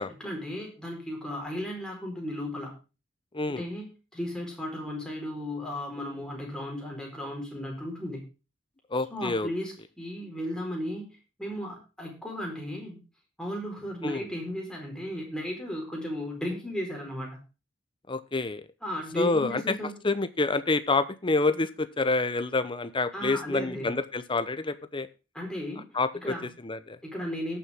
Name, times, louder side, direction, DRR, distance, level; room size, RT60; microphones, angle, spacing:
voice 1, 0.0-2.7 3.5-8.2 9.1-11.1 11.4-13.0 13.4-17.4 18.8-19.9 23.1-23.9 25.3-25.8 26.2-26.5 27.0-27.6, equal, 5° left, -1 dB, 4.3 m, -35 dB
voice 2, 8.9-9.5 14.0-14.3 18.1-18.7 19.2-19.6 20.0-25.1 25.9-27.0, left 3 dB, 25° left, 12 dB, 0.9 m, -28 dB
18.0 x 7.2 x 3.6 m, 0.30 s
head